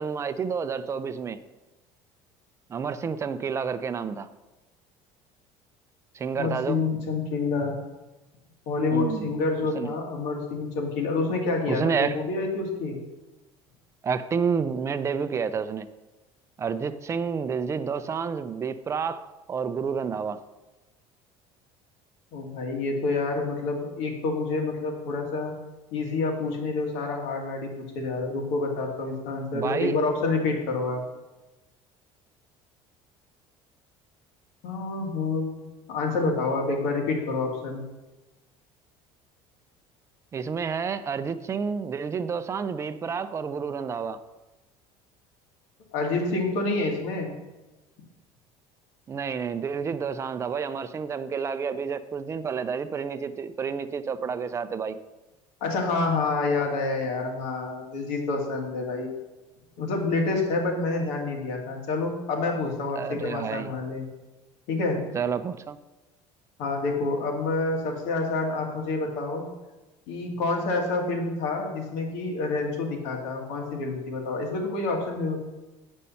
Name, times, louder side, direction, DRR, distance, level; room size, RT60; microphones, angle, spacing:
voice 1, 0.0-1.4 2.7-4.3 6.1-6.8 8.9-9.4 9.7-9.9 11.7-12.2 14.0-15.9 16.6-20.4 29.5-30.0 40.3-44.2 49.1-55.0 63.0-63.7 65.1-65.8, right 6 dB, 25° right, 12 dB, 0.5 m, -29 dB
voice 2, 6.4-7.8 8.7-13.0 22.3-25.5 25.9-31.0 34.6-37.8 45.9-47.3 55.6-59.1 59.8-64.1 64.7-65.0 66.6-69.5 70.1-75.4, left 3 dB, 75° left, 1 dB, 2.1 m, -28 dB
9.8 x 5.3 x 5.7 m, 1.1 s
cardioid pair, 140°, 12 cm